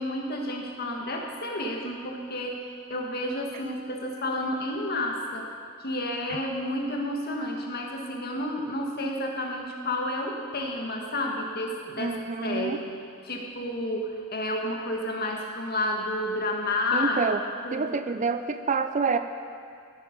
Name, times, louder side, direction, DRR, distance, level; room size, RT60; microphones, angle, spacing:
voice 1, 0.0-5.5 5.8-12.9 13.2-17.2 17.6-17.9, left 1 dB, 50° left, 1 dB, 1.7 m, -31 dB
voice 2, 12.0-12.8 16.9-17.4 17.7-19.2, right 4 dB, 35° right, 9 dB, 0.5 m, -27 dB
16.0 x 9.8 x 5.3 m, 2.2 s
head